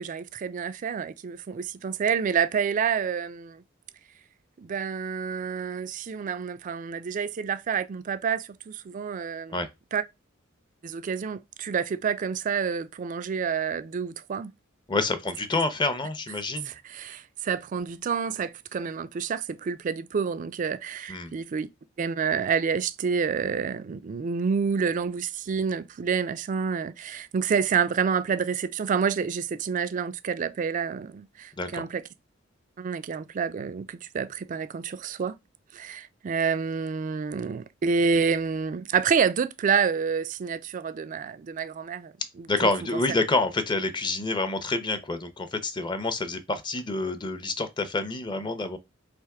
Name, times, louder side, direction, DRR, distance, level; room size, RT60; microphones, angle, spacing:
voice 1, 0.0-3.6 4.6-10.0 10.8-14.5 16.7-21.7 22.0-32.0 32.8-35.4 35.7-42.1 42.4-42.7, right 6 dB, 40° right, 0.3 m, -28 dB
voice 2, 14.9-16.7 21.1-21.3 31.6-31.9 42.5-48.8, left 3 dB, 25° left, 0.5 m, -28 dB
3.3 x 2.9 x 4.7 m
head